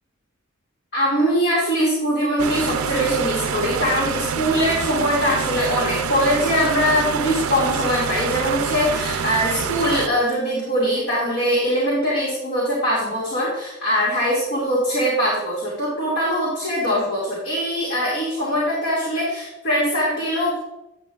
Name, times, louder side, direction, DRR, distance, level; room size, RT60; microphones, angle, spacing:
voice 1, 0.9-20.6, equal, 55° left, -7 dB, 2.3 m, -22 dB
sound 1, 2.4-10.1, right 7 dB, 80° right, 0.4 m, -26 dB
8.8 x 7.5 x 2.4 m, 0.93 s
head